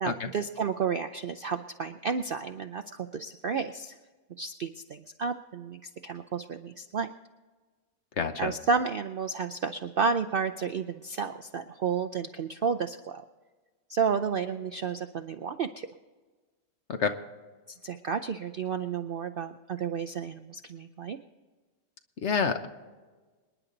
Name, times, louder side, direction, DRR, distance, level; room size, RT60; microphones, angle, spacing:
voice 1, 0.0-4.0 4.4-7.1 8.4-13.2 13.9-15.9 17.7-21.2, right 5 dB, 60° right, 9 dB, 0.6 m, -31 dB
voice 2, 8.2-8.5 16.9-17.1 22.2-22.7, left 5 dB, 55° left, 8 dB, 1.2 m, -28 dB
26.0 x 10.5 x 3.9 m, 1.3 s
omnidirectional pair, 1.5 m